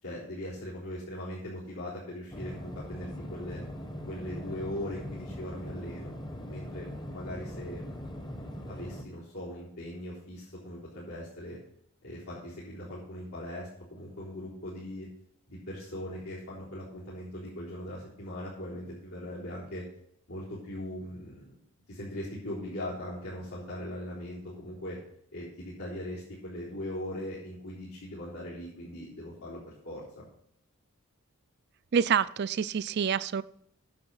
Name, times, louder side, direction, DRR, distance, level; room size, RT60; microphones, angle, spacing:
voice 1, 0.0-3.6 4.1-6.1 6.5-7.9 8.7-11.6 12.0-15.1 15.5-19.8 20.3-21.5 21.9-25.0 25.3-30.3, left 1 dB, 85° left, -10 dB, 4.0 m, -40 dB
sound 1, 2.3-9.0, equal, 20° left, 0.8 m, -41 dB
voice 2, 31.9-33.4, right 7 dB, 45° right, 17 dB, 0.3 m, -27 dB
9.9 x 7.7 x 5.6 m, 0.69 s
head